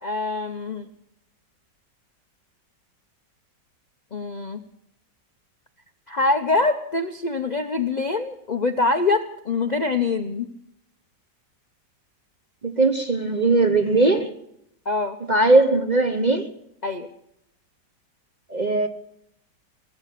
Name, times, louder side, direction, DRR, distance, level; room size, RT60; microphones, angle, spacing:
voice 1, 0.0-0.9 4.1-4.6 6.1-10.5 14.9-15.2 16.8-17.1, left 3 dB, 80° left, 8 dB, 0.4 m, -24 dB
voice 2, 12.6-14.3 15.3-16.5 18.5-18.9, right 2 dB, 40° right, 8 dB, 0.6 m, -19 dB
19.0 x 8.3 x 8.2 m, 0.79 s
omnidirectional pair, 2.0 m